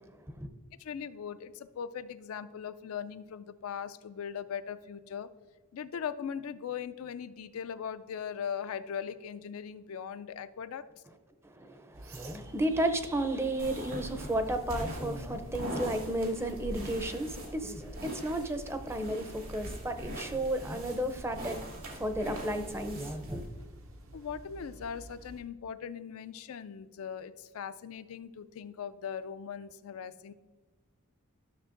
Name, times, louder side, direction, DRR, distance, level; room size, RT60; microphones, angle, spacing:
voice 1, 0.8-5.3 5.7-10.8 24.1-30.3, left 7 dB, 75° left, 0.4 m, -39 dB
voice 2, 11.4-21.6 22.0-23.4, right 1 dB, 10° right, 0.5 m, -33 dB
sound 1, 11.9-25.4, right 1 dB, 65° right, 0.8 m, -50 dB
sound 2, 13.6-23.5, equal, 80° right, 2.8 m, -42 dB
12.5 x 6.6 x 2.5 m
head